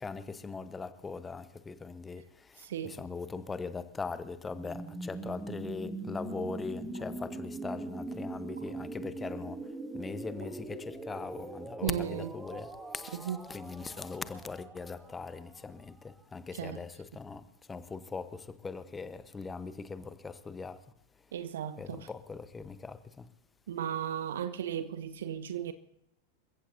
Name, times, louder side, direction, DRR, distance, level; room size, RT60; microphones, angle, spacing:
voice 1, 0.0-9.6 9.9-20.8 21.8-23.3, left 4 dB, 15° left, 1.0 m, -41 dB
voice 2, 2.6-3.0 11.8-12.3 13.2-13.4 16.5-16.8 21.3-22.1 23.7-25.7, right 9 dB, 60° right, 1.0 m, -35 dB
sound 1, 4.5-16.2, right 2 dB, 10° right, 1.9 m, -42 dB
sound 2, 4.9-5.2 6.9-7.3 8.5-9.0 10.4-10.8 12.5-12.9 14.0-14.2, right 3 dB, 75° right, 2.2 m, -58 dB
28.5 x 15.5 x 2.7 m
figure-of-eight pair, 90°, 0 cm